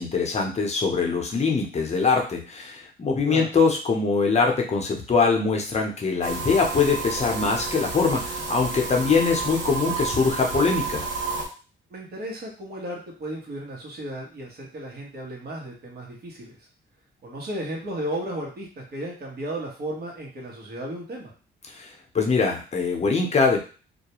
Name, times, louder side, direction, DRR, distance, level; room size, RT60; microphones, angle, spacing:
voice 1, 0.0-11.0 21.7-21.9 22.1-23.6, left 4 dB, 35° left, 1 dB, 0.7 m, -23 dB
sound 1, 6.2-11.5, right 4 dB, 75° right, 0.8 m, -30 dB
voice 2, 11.9-16.6 17.2-21.3, right 1 dB, 50° right, -1 dB, 1.0 m, -34 dB
2.3 x 2.2 x 2.9 m, 0.36 s
cardioid pair, 90°, 20 cm